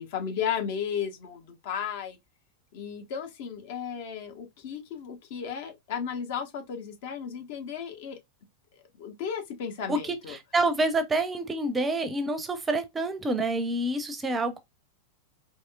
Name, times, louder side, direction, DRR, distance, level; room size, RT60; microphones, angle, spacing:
voice 1, 0.0-2.2 2.7-8.2 9.0-10.4, left 7 dB, 50° left, 1.0 m, -34 dB
voice 2, 9.9-14.6, right 2 dB, 15° right, 0.6 m, -28 dB
4.2 x 3.0 x 2.2 m
figure-of-eight pair, 90°, 0 cm